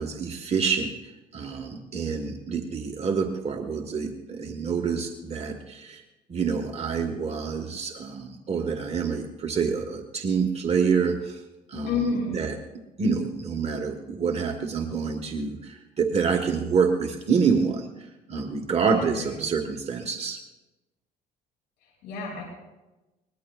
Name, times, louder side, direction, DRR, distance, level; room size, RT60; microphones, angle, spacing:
voice 1, 0.0-6.0 6.3-11.4 11.7-12.6 13.0-20.4, right 5 dB, 40° right, 4 dB, 1.3 m, -27 dB
voice 2, 11.8-12.4 18.9-19.4 21.8-22.4, left 4 dB, 85° left, -3 dB, 5.6 m, -30 dB
23.0 x 20.0 x 2.3 m, 1.1 s
cardioid pair, 110°, 17 cm